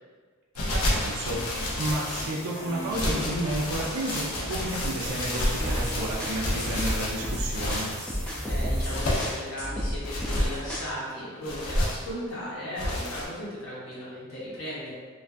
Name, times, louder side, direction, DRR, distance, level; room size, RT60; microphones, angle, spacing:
sound 1, 0.5-2.4 2.9-8.0 8.7-9.5 10.0-10.6 11.4-12.1 12.8-13.2, left 1 dB, 85° left, 0.5 m, -30 dB
voice 1, 0.7-1.5 1.8-7.9, right 1 dB, 80° right, -2 dB, 0.4 m, -31 dB
sound 2, 1.1-9.0, equal, 30° left, 0.8 m, -40 dB
sound 3, 5.6-10.9, equal, 5° left, 0.3 m, -32 dB
voice 2, 8.5-14.9, equal, 65° left, -8 dB, 0.9 m, -36 dB
2.5 x 2.3 x 2.3 m, 1.5 s
head